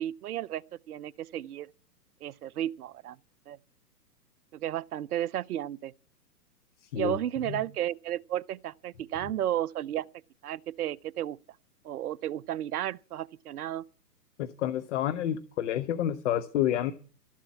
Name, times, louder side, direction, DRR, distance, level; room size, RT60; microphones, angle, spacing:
voice 1, 0.0-1.7 2.2-3.2 3.5-3.6 4.5-5.9 7.0-10.1 10.4-11.4 11.8-13.8, right 12 dB, 65° right, 0.7 m, -33 dB
voice 2, 14.4-16.9, left 11 dB, 45° left, 0.9 m, -29 dB
13.0 x 7.4 x 8.3 m
hypercardioid pair, 125°, 49 cm